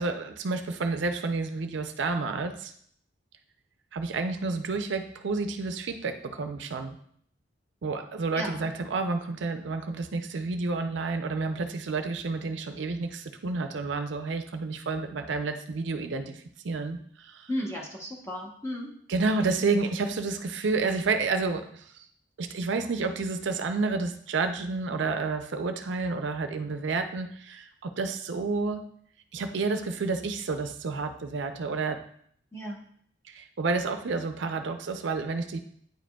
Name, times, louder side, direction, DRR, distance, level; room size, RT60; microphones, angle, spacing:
voice 1, 0.0-2.7 3.9-7.0 7.8-17.5 19.1-22.0 22.4-28.8 29.3-32.0 33.3-35.6, right 3 dB, 65° right, 7 dB, 0.5 m, -30 dB
voice 2, 8.3-8.7 17.5-18.9 32.5-32.8, equal, 15° left, -2 dB, 1.0 m, -34 dB
9.0 x 4.9 x 2.3 m, 0.64 s
head